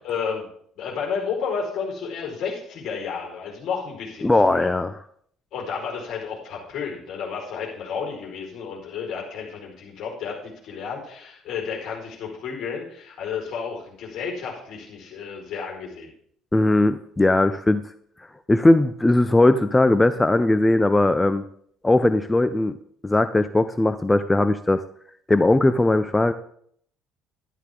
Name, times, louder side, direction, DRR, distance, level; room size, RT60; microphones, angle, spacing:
voice 1, 0.0-0.4 0.8-4.7 5.5-16.1, left 6 dB, 55° left, -1 dB, 4.8 m, -32 dB
voice 2, 4.2-5.0 16.5-17.8 18.5-21.4 21.8-22.8 23.0-24.8 25.3-26.3, left 2 dB, 15° left, 11 dB, 0.7 m, -19 dB
12.0 x 11.0 x 3.8 m, 0.64 s
figure-of-eight pair, 55°, 0 cm